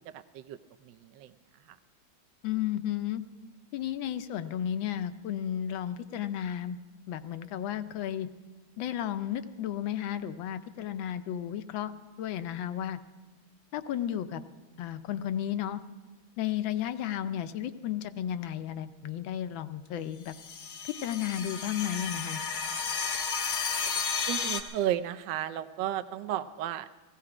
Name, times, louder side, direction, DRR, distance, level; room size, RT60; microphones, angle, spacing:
voice 1, 0.1-0.6 0.8-1.3 1.7-1.8 24.3-26.9, right 12 dB, 70° right, 10 dB, 1.2 m, -33 dB
voice 2, 2.4-3.2 3.7-6.8 7.1-8.3 8.8-11.9 12.2-13.0 13.7-14.4 14.8-15.8 16.4-20.3 21.0-22.4, left 10 dB, 75° left, 11 dB, 1.4 m, -33 dB
sound 1, 20.3-24.6, left 5 dB, 50° left, 0.9 m, -33 dB
16.5 x 16.0 x 4.9 m, 1.3 s
omnidirectional pair, 2.3 m